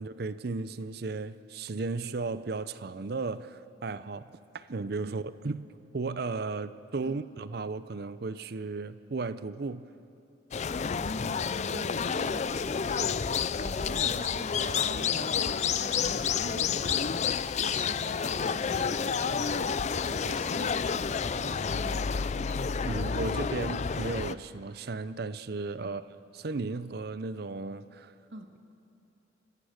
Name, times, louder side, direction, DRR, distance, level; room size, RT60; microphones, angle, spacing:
voice 1, 0.0-5.6 5.9-9.9 22.8-28.1, right 3 dB, 55° right, 0.6 m, -35 dB
sound 1, 10.5-24.3, left 6 dB, 40° left, 0.4 m, -30 dB
voice 2, 10.9-22.1 25.8-26.0 28.3-28.5, right 2 dB, 90° right, 1.7 m, -45 dB
27.5 x 15.0 x 6.5 m
head